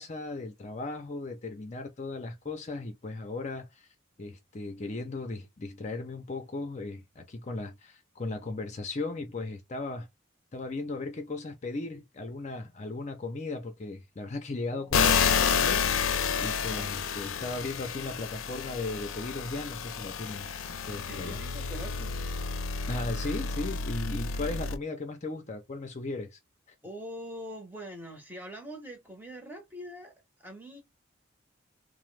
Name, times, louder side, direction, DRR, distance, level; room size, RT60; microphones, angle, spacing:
voice 1, 0.0-3.9 4.2-10.1 10.5-16.0 16.4-21.4 22.9-26.4, left 2 dB, 35° left, 0.5 m, -37 dB
sound 1, 14.9-24.8, left 6 dB, 85° left, 0.4 m, -30 dB
voice 2, 16.6-16.9 21.1-22.1 26.8-30.1 30.4-30.8, equal, 10° right, 0.8 m, -43 dB
2.9 x 2.0 x 3.1 m
head